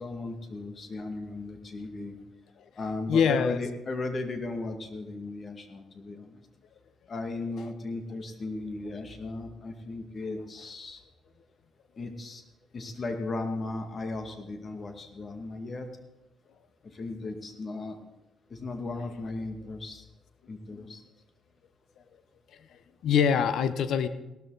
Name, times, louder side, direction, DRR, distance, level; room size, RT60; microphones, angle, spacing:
voice 1, 0.0-2.2 2.8-6.4 7.1-11.0 12.0-12.4 12.7-15.9 16.9-18.0 18.5-20.0 20.5-21.0, left 2 dB, 40° left, 5 dB, 2.2 m, -36 dB
voice 2, 3.1-3.6 20.7-20.8 22.6-24.1, left 7 dB, 75° left, 12 dB, 1.0 m, -25 dB
17.5 x 13.0 x 4.1 m, 1.0 s
cardioid pair, 90°, 0 cm